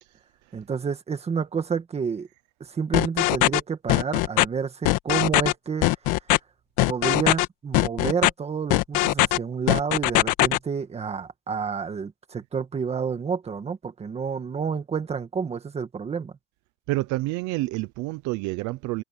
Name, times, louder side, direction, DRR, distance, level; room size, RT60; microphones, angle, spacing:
voice 1, 0.5-2.3 2.6-5.9 6.9-16.3, right 6 dB, 15° right, 1.8 m, -29 dB
sound 1, 2.9-3.6 3.9-4.5 4.9-5.5 5.8-6.4 6.8-7.5 7.7-8.3 8.7-9.4 9.7-10.6, left 18 dB, 55° left, 1.7 m, -20 dB
voice 2, 16.9-19.0, right 19 dB, 50° right, 0.9 m, -28 dB
cardioid pair, 165°, 36 cm